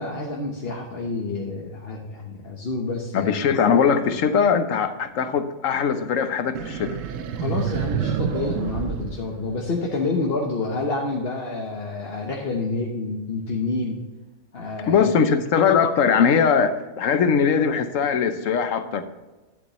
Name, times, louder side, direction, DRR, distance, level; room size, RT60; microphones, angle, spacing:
voice 1, 0.0-3.3 7.4-14.0 14.5-15.2, left 3 dB, 45° left, -1 dB, 1.2 m, -28 dB
voice 2, 3.1-7.0 14.9-19.0, left 6 dB, 70° left, 10 dB, 1.1 m, -20 dB
sound 1, 6.5-10.0, right 8 dB, 70° right, 0.9 m, -28 dB
11.0 x 8.4 x 3.1 m, 1.2 s
omnidirectional pair, 1.5 m